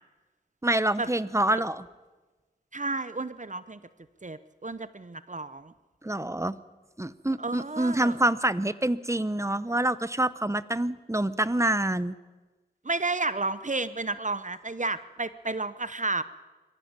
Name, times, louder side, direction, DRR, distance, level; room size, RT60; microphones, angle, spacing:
voice 1, 0.6-1.8 6.0-6.6 7.0-12.2, right 1 dB, 15° right, 16 dB, 0.9 m, -26 dB
voice 2, 2.7-3.8 4.2-5.7 7.4-8.2 12.8-16.2, right 3 dB, 45° right, 14 dB, 0.9 m, -31 dB
22.5 x 14.5 x 8.8 m, 1.2 s
wide cardioid pair, 45°, 18 cm